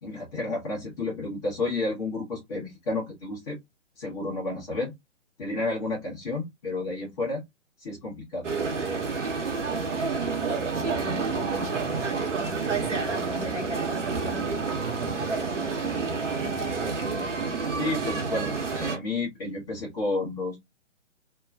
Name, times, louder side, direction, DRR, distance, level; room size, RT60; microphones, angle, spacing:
voice 1, 0.0-3.6 4.0-4.9 5.4-7.4 7.8-8.5 17.7-20.6, left 2 dB, 30° left, 1.2 m, -31 dB
sound 1, 8.4-19.0, right 4 dB, 70° right, 1.0 m, -29 dB
voice 2, 10.7-17.3, right 2 dB, 30° right, 0.9 m, -39 dB
2.9 x 2.3 x 2.3 m
figure-of-eight pair, 130°, 38 cm